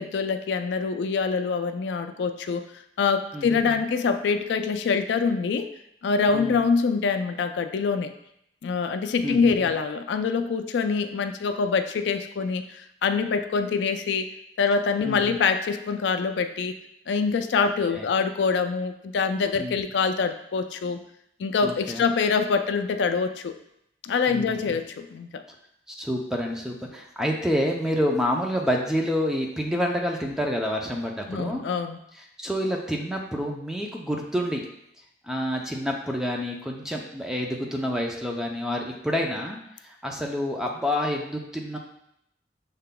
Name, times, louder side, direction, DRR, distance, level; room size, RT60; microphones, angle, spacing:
voice 1, 0.0-2.7 3.0-5.7 6.0-8.1 8.6-14.3 14.6-16.8 17.1-21.0 21.4-23.5 24.0-25.4 31.3-32.0, left 5 dB, 80° left, 8 dB, 0.3 m, -25 dB
voice 2, 3.3-3.8 6.3-6.6 9.2-9.7 15.0-15.4 17.9-18.1 19.6-19.8 21.6-22.0 24.3-24.8 25.9-31.6 32.4-34.6 35.2-39.6 39.8-41.8, equal, 5° right, 0 dB, 0.5 m, -28 dB
6.6 x 3.7 x 2.2 m, 0.76 s
head